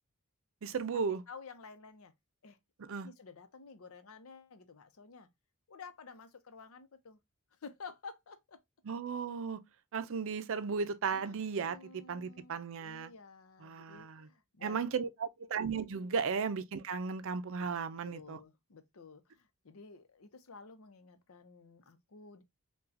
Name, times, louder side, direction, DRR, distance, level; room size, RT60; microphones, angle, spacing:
voice 1, 0.6-1.2 2.8-3.1 8.8-9.6 9.9-13.1 13.6-14.3 14.6-18.4, right 5 dB, 65° right, 0.5 m, -35 dB
voice 2, 1.3-2.1 2.4-2.6 3.0-5.3 5.7-7.2 7.6-8.6 11.1-14.9 15.9-16.0 18.0-22.4, left 4 dB, 70° left, 0.7 m, -52 dB
5.6 x 2.3 x 2.6 m
head